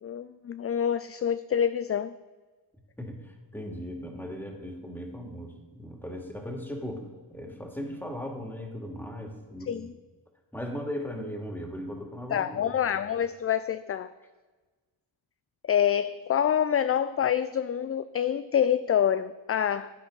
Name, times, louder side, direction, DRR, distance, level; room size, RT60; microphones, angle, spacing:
voice 1, 0.0-2.1 9.7-9.9 12.3-14.1 15.6-19.9, left 9 dB, 30° left, 0.4 m, -26 dB
voice 2, 3.0-9.9 10.5-12.9, equal, 5° left, 2.3 m, -38 dB
11.0 x 8.5 x 3.9 m
cardioid pair, 50°, 48 cm